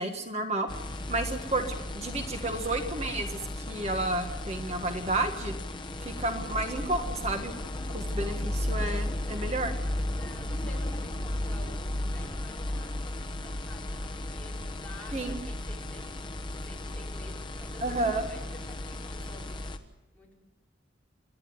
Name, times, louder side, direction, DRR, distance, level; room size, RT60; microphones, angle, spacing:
voice 1, 0.0-0.7 1.1-5.5 6.0-7.5 7.9-9.7 15.1-15.4 17.8-18.3, right 2 dB, 35° right, 5 dB, 1.5 m, -31 dB
sound 1, 0.7-19.8, left 1 dB, 25° left, 1.3 m, -35 dB
voice 2, 0.8-1.1 10.2-19.6 20.1-20.4, left 1 dB, 10° left, -4 dB, 4.9 m, -50 dB
28.0 x 11.5 x 9.5 m, 1.0 s
head